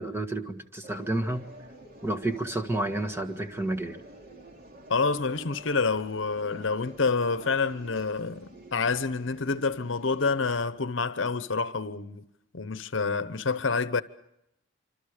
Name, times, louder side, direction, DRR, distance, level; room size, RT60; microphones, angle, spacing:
voice 1, 0.0-1.5 2.0-4.0, right 1 dB, 15° right, 1.7 m, -30 dB
sound 1, 0.8-10.6, right 1 dB, 50° right, 3.0 m, -49 dB
voice 2, 4.9-12.3 12.5-14.0, left 4 dB, 70° left, 0.9 m, -28 dB
26.0 x 26.0 x 5.0 m
head